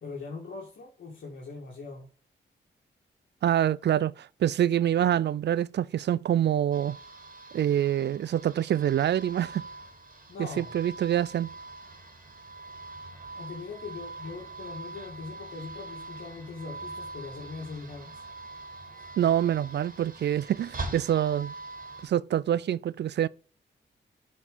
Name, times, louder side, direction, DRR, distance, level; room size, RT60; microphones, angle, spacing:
voice 1, 0.0-2.1 10.3-10.7 13.3-18.2 19.0-19.1, left 4 dB, 70° left, 2.0 m, -41 dB
voice 2, 3.4-7.0 7.5-9.6 10.4-11.5 19.2-21.5 22.0-23.3, right 10 dB, 60° right, 0.4 m, -26 dB
sound 1, 6.7-22.0, right 3 dB, 45° right, 2.4 m, -43 dB
7.2 x 4.5 x 5.0 m
cardioid pair, 60°, 20 cm